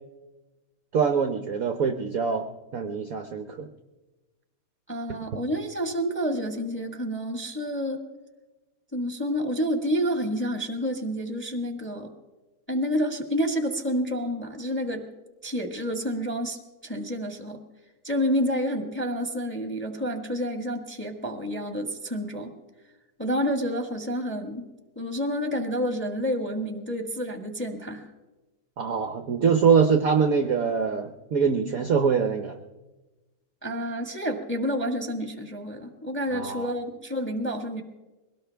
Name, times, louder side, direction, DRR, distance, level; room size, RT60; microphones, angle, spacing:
voice 1, 0.9-3.7 28.8-32.6 36.3-36.7, right 6 dB, 65° right, 6 dB, 0.9 m, -24 dB
voice 2, 4.9-8.0 8.9-12.1 12.7-15.1 15.4-17.6 18.0-22.5 23.2-24.7 24.9-28.1 33.6-37.8, equal, 5° left, 4 dB, 1.1 m, -29 dB
22.0 x 17.5 x 3.4 m, 1.1 s
omnidirectional pair, 2.4 m